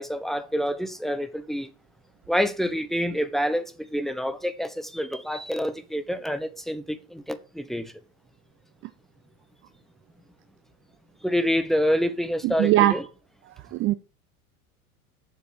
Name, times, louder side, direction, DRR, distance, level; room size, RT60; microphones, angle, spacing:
voice 1, 0.0-1.7 2.3-7.9 11.2-13.1, equal, ahead, 1.0 m, -27 dB
voice 2, 12.6-13.0 13.8-13.9, right 15 dB, 30° right, 0.5 m, -18 dB
7.7 x 6.7 x 6.5 m
hypercardioid pair, 90°, 45 cm